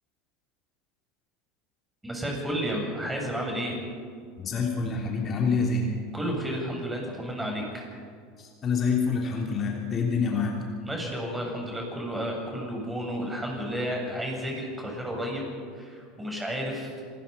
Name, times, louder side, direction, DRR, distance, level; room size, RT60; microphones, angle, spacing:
voice 1, 2.0-3.8 6.1-7.8 10.8-15.4 15.7-17.0, equal, 10° right, 0 dB, 8.0 m, -32 dB
voice 2, 4.4-6.0 8.4-10.6, left 4 dB, 35° left, 0 dB, 3.2 m, -27 dB
27.0 x 20.0 x 5.6 m, 2.2 s
hypercardioid pair, 80°, 0 cm